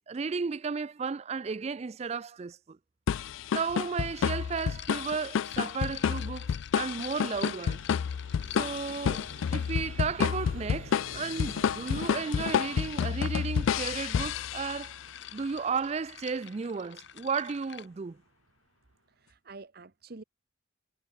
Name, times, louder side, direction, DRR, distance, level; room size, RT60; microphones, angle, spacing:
voice 1, 0.1-2.8 3.5-7.8 8.6-15.0 15.3-18.2, right 5 dB, 30° right, 0.4 m, -34 dB
sound 1, 3.1-15.0, left 7 dB, 75° left, 0.3 m, -30 dB
sound 2, 3.3-3.4 4.1-10.0 10.9-17.9, left 11 dB, 60° left, 1.4 m, -47 dB
Vehicle, 4.9-19.2, right 3 dB, 75° right, 1.2 m, -53 dB
voice 2, 19.1-20.2, right 3 dB, 50° right, 0.9 m, -48 dB
head